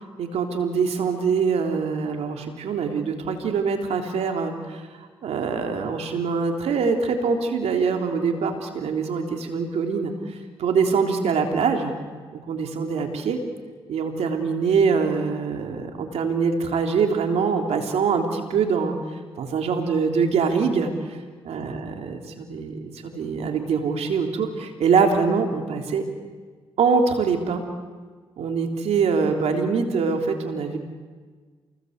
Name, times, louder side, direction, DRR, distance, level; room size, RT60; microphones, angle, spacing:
voice 1, 0.2-10.1 10.6-11.9 12.3-13.4 13.9-18.9 19.4-21.2 21.4-26.1 26.8-27.6 28.4-30.8, right 5 dB, 80° right, 4 dB, 3.5 m, -24 dB
29.0 x 20.5 x 8.2 m, 1.5 s
supercardioid pair, 50°, 11 cm